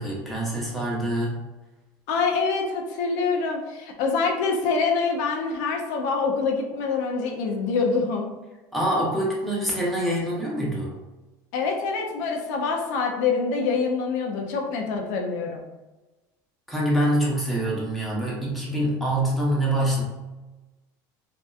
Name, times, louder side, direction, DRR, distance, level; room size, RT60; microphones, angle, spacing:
voice 1, 0.0-1.4 8.7-10.9 16.7-20.0, right 1 dB, ahead, -5 dB, 0.9 m, -25 dB
voice 2, 2.1-8.3 11.5-15.6, left 4 dB, 75° left, 2 dB, 0.4 m, -25 dB
2.7 x 2.1 x 2.3 m, 1.1 s
supercardioid pair, 105°, 10 cm